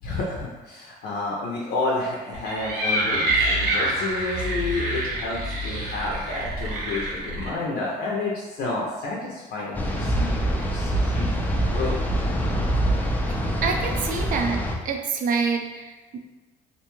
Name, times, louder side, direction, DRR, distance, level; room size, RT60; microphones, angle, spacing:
voice 1, 0.0-11.3 11.7-12.0, left 3 dB, 75° left, -4 dB, 0.5 m, -30 dB
sound 1, 2.3-7.5, right 1 dB, 85° right, 0.8 m, -26 dB
sound 2, 9.7-14.7, right 1 dB, 10° left, 0.3 m, -24 dB
voice 2, 13.6-16.2, right 5 dB, 50° right, 3 dB, 0.4 m, -27 dB
2.6 x 2.2 x 2.9 m, 1.2 s
cardioid pair, 110°, 17 cm